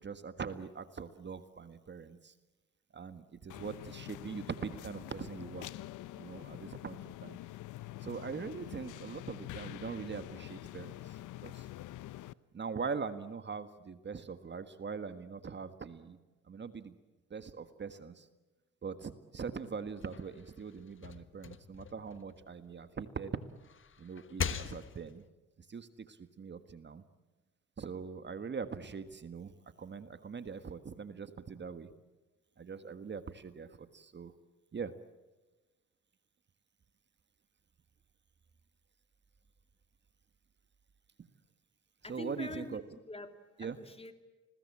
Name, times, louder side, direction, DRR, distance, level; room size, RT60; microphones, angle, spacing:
voice 1, 0.0-2.3 2.9-5.7 6.2-7.4 8.0-11.6 12.5-16.2 16.5-17.0 17.3-18.3 18.8-23.4 24.0-25.2 25.7-27.0 27.8-29.5 29.8-31.9 32.6-34.3 34.7-34.9 42.1-42.8 43.6-43.8, right 5 dB, 35° right, 10 dB, 1.6 m, -42 dB
sound 1, 3.5-12.3, left 15 dB, 80° left, 0.8 m, -46 dB
sound 2, 19.9-23.0 23.5-25.3, left 6 dB, 40° left, 1.5 m, -42 dB
voice 2, 42.0-42.8 43.1-44.1, left 2 dB, 20° left, 8 dB, 2.7 m, -45 dB
30.0 x 21.0 x 8.7 m, 1.2 s
cardioid pair, 90°, 30 cm